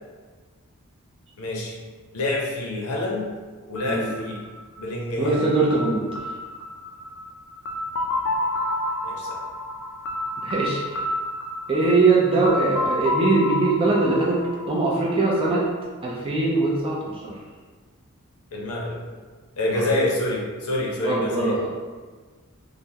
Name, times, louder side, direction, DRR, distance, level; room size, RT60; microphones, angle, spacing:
voice 1, 1.4-1.8 2.1-3.3 3.7-4.4 4.8-5.5 9.0-9.4 18.5-19.0 19.6-21.6, left 1 dB, 85° left, -2 dB, 0.7 m, -27 dB
sound 1, 3.8-15.5, left 1 dB, 55° left, 0.3 m, -30 dB
voice 2, 5.2-6.0 10.4-11.0 11.7-15.6 16.0-17.4 19.8-19.9 21.0-21.7, right 3 dB, 25° right, -4 dB, 0.4 m, -22 dB
3.3 x 2.0 x 2.7 m, 1.4 s
head